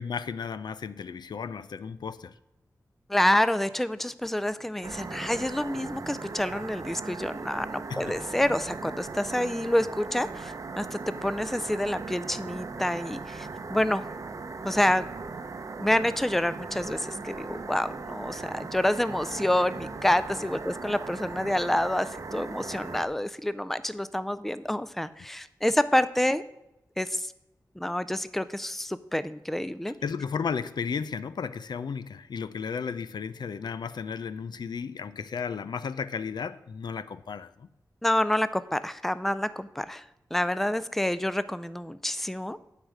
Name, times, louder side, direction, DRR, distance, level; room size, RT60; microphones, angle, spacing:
voice 1, 0.0-2.3 7.9-8.1 29.9-37.7, left 6 dB, 90° left, 14 dB, 0.5 m, -34 dB
voice 2, 3.1-14.0 14.6-15.1 15.8-26.4 27.0-27.2 27.8-29.9 38.0-40.0 40.3-42.6, left 1 dB, 5° left, 14 dB, 0.4 m, -28 dB
sound 1, 4.8-23.0, right 4 dB, 50° right, 0.7 m, -38 dB
9.7 x 4.9 x 8.0 m, 0.92 s
wide cardioid pair, 125°, 7 cm